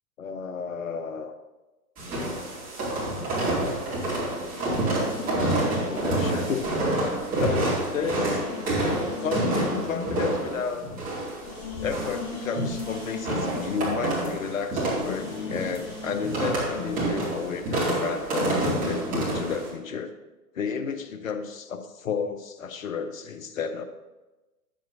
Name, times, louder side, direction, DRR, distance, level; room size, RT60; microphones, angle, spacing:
voice 1, 0.2-1.3 5.4-6.7 7.3-8.4 9.2-10.9 11.8-20.1 20.5-23.8, left 6 dB, 55° left, 8 dB, 0.9 m, -32 dB
sound 1, 2.0-19.7, right 1 dB, 15° right, 2.5 m, -28 dB
sound 2, 4.5-7.5 8.0-14.6 14.9-17.6, left 4 dB, 25° left, 0.9 m, -39 dB
10.0 x 7.6 x 2.7 m, 1.1 s
figure-of-eight pair, 115°, 48 cm